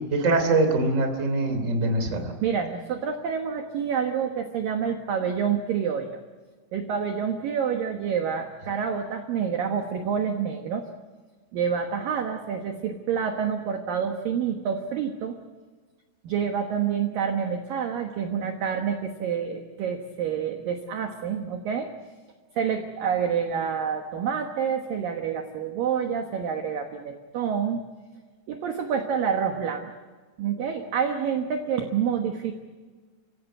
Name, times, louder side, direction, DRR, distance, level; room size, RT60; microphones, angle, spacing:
voice 1, 0.1-2.3, right 2 dB, 20° right, 6 dB, 2.2 m, -23 dB
voice 2, 2.4-6.2 6.7-10.8 11.5-15.4 16.2-21.9 22.6-27.9 28.5-29.9 30.4-32.5, right 7 dB, 70° right, 5 dB, 2.1 m, -28 dB
29.5 x 17.0 x 8.0 m, 1.4 s
omnidirectional pair, 5.9 m